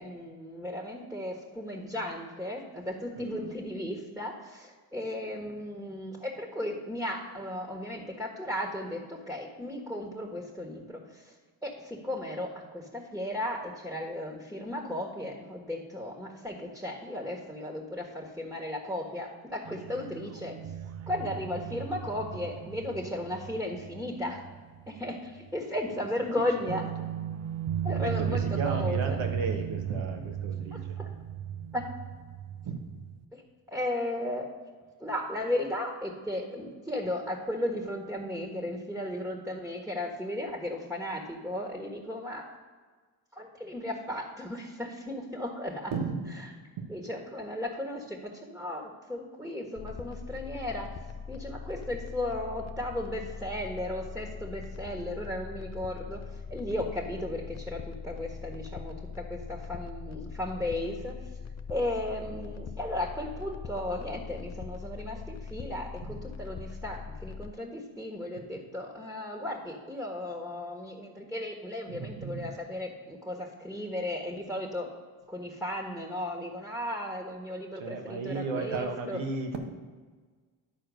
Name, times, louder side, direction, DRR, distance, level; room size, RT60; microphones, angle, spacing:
voice 1, 0.0-11.3 11.6-20.5 21.1-24.4 24.9-26.9 27.8-29.2 30.7-31.1 31.7-31.9 33.3-33.4 33.7-34.5 35.0-42.5 43.3-45.9 46.9-50.9 51.3-56.2 56.5-61.2 61.7-74.9 75.3-79.2, left 1 dB, ahead, 0 dB, 1.7 m, -35 dB
voice 2, 3.2-3.6 21.7-22.1 26.0-26.9 27.9-31.0 32.6-32.8 45.9-46.3 46.8-46.9 66.0-66.1 71.9-72.5 77.7-79.6, right 4 dB, 80° right, 4 dB, 1.4 m, -35 dB
sound 1, 19.7-25.1 25.4-25.5 26.7-33.2, right 9 dB, 35° right, 0.4 m, -35 dB
sound 2, 49.8-67.5, left 5 dB, 35° left, 0.6 m, -41 dB
10.5 x 4.4 x 6.4 m, 1.5 s
supercardioid pair, 55°, 47 cm